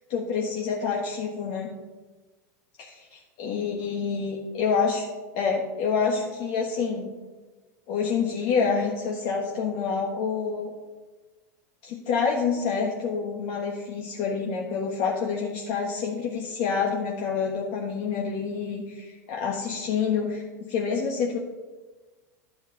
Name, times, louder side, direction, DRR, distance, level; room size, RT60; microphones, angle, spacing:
voice 1, 0.1-1.7 2.8-5.0 5.3-7.1 7.9-10.7 11.8-21.4, left 5 dB, 55° left, -1 dB, 1.5 m, -27 dB
11.5 x 7.8 x 4.0 m, 1.3 s
hypercardioid pair, 95°, 10 cm